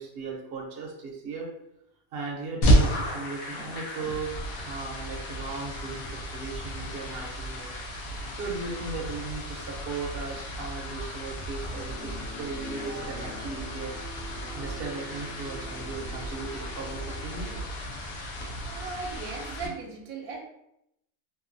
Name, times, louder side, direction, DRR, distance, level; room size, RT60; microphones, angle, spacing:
voice 1, 0.0-1.5 2.1-4.3 4.6-7.7 8.4-14.2 14.5-17.5, right 4 dB, 55° right, -1 dB, 0.8 m, -37 dB
sound 1, 2.6-19.7, equal, 85° left, 1.0 m, -32 dB
sound 2, 11.9-17.6, equal, 50° left, 1.0 m, -44 dB
voice 2, 18.6-20.4, right 4 dB, 85° right, 1 dB, 1.0 m, -37 dB
3.0 x 2.2 x 2.5 m, 0.81 s
omnidirectional pair, 1.4 m